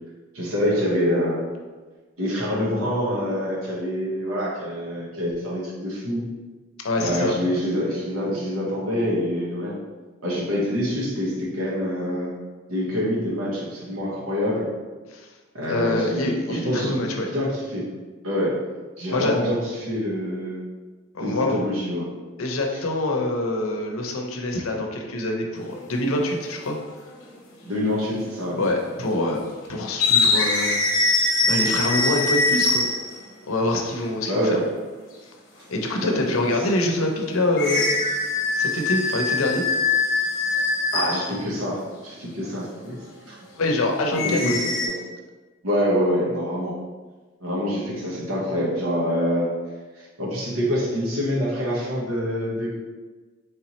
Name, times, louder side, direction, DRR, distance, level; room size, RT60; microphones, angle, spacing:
voice 1, 0.3-1.4 2.2-6.2 7.0-9.8 10.2-12.3 12.7-14.7 15.5-17.0 17.3-17.8 18.2-18.5 19.0-20.6 21.2-22.1 22.7-22.8 27.6-28.6 34.3-34.6 36.0-36.3 40.9-43.0 43.3-43.4 44.2-45.0 45.6-46.8 47.4-49.5 49.9-52.8, equal, 85° right, -5 dB, 1.2 m, -26 dB
voice 2, 6.8-7.3 15.1-15.3 15.7-17.3 19.1-19.4 21.1-21.6 22.4-26.8 28.6-29.4 29.7-30.8 31.4-32.9 33.5-34.6 35.7-37.9 38.5-39.6 43.5-44.5, left 2 dB, 90° left, 1 dB, 0.7 m, -25 dB
sound 1, 25.6-25.9 27.0-27.1 28.1-28.5 28.8-28.9 29.9-33.2 37.6-41.3 44.1-44.9, left 3 dB, 60° left, 0.9 m, -22 dB
4.1 x 3.4 x 2.9 m, 1.3 s
head